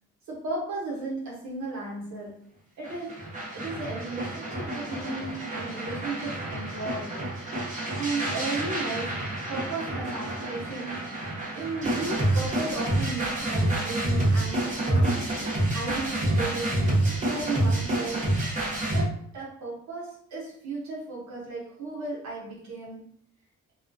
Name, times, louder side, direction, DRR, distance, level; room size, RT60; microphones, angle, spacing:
voice 1, 0.3-2.4 2.8-3.2 3.5-7.3 8.0-9.2 9.5-15.2 15.7-16.9 17.2-18.3 18.9-23.0, right 3 dB, 65° right, -4 dB, 0.9 m, -35 dB
sound 1, 2.8-19.0, right 1 dB, 25° right, 1.0 m, -28 dB
2.3 x 2.3 x 2.5 m, 0.66 s
cardioid pair, 90°, 30 cm